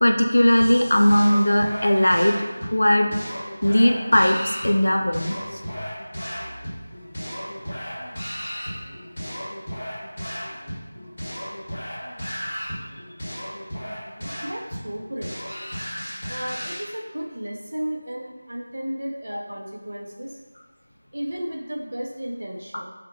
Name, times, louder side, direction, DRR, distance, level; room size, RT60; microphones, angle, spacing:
voice 1, 0.0-3.2 3.6-5.4, left 1 dB, 75° left, 3 dB, 0.3 m, -19 dB
sound 1, 0.6-16.8, equal, 40° left, 1.0 m, -34 dB
voice 2, 13.8-15.4 16.3-20.4 21.1-22.9, equal, 65° right, -1 dB, 0.4 m, -34 dB
2.5 x 2.1 x 2.7 m, 1.3 s
figure-of-eight pair, 175°, 0 cm